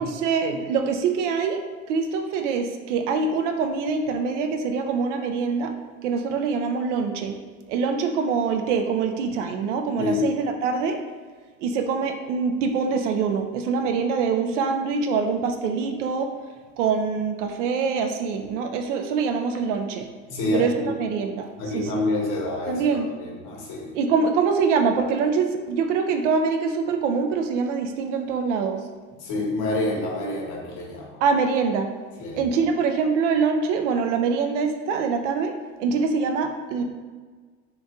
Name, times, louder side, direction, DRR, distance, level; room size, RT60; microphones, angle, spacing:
voice 1, 0.0-1.6 1.9-5.7 6.0-7.3 7.7-11.0 11.6-16.3 16.8-20.1 20.5-22.1 22.7-23.1 23.9-28.8 31.2-31.9 32.3-36.8, right 5 dB, 70° right, 6 dB, 0.5 m, -24 dB
voice 2, 10.0-10.3 20.3-20.9 21.6-23.9 29.2-31.2 32.2-32.5, left 2 dB, 55° left, -2 dB, 1.0 m, -27 dB
2.8 x 2.6 x 3.4 m, 1.5 s
hypercardioid pair, 65°, 37 cm